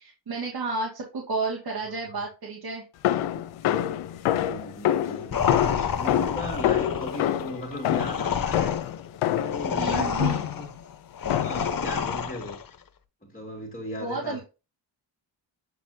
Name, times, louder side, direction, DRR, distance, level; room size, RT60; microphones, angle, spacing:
voice 1, 0.0-2.8 9.8-10.5 14.0-14.4, right 3 dB, 45° right, 2.1 m, -31 dB
voice 2, 1.8-2.2 4.3-8.8 9.3-10.7 11.3-12.6 13.2-14.4, left 1 dB, 15° left, 2.2 m, -37 dB
sound 1, 3.0-9.7 10.2-10.7 11.3-11.8, left 11 dB, 75° left, 0.8 m, -26 dB
sound 2, 5.3-12.7, left 7 dB, 45° left, 1.0 m, -29 dB
8.2 x 4.1 x 2.8 m
supercardioid pair, 55°, 50 cm